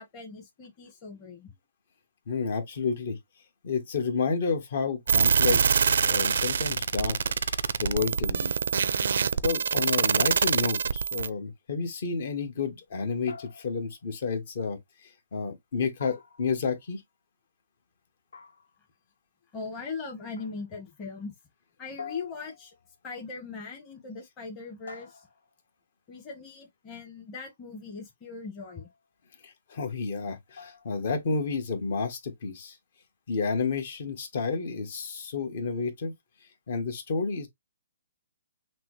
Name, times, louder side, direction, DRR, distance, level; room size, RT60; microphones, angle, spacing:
voice 1, 0.0-1.6 19.5-21.3 21.8-22.7 23.0-25.3 26.1-28.9, left 4 dB, 15° left, 1.1 m, -40 dB
voice 2, 2.3-3.2 3.6-7.2 7.4-7.5 7.8-8.5 9.4-17.0 29.4-32.8 33.3-36.1 36.7-37.5, left 5 dB, 50° left, 1.3 m, -30 dB
sound 1, 5.1-11.3, right 6 dB, 70° right, 0.4 m, -25 dB
sound 2, 13.3-14.0 16.0-16.9 18.3-18.9 20.4-20.8 22.0-22.9 24.9-25.7 28.6-29.0 30.5-31.1, left 5 dB, 85° left, 1.1 m, -47 dB
6.0 x 2.1 x 3.0 m
hypercardioid pair, 165°, 0 cm